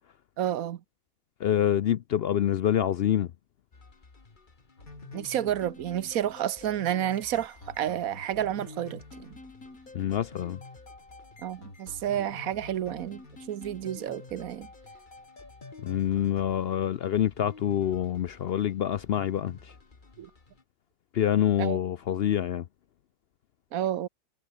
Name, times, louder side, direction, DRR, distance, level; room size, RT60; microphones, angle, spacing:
voice 1, 0.4-0.8 5.1-9.4 11.4-13.2 13.5-14.7 20.2-20.3 21.6-21.8 23.7-24.1, right 11 dB, 80° right, 1.3 m, -30 dB
voice 2, 1.4-3.3 9.9-10.6 15.8-19.7 21.1-22.7, left 10 dB, 60° left, 0.6 m, -26 dB
sound 1, 3.7-20.6, left 3 dB, 35° left, 1.9 m, -51 dB
sound 2, 4.8-16.4, left 2 dB, 90° left, 6.1 m, -49 dB
omnidirectional pair, 1.4 m